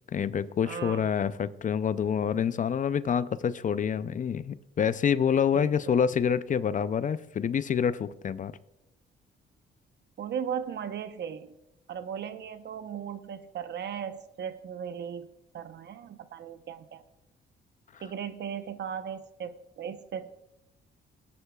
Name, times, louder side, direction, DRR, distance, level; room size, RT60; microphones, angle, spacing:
voice 1, 0.1-8.5, left 7 dB, 40° left, 0.5 m, -27 dB
voice 2, 0.6-1.1 5.5-5.9 10.2-11.5 11.9-17.0 18.0-20.3, right 8 dB, 60° right, 0.9 m, -37 dB
17.5 x 9.8 x 2.3 m
cardioid pair, 90°, 20 cm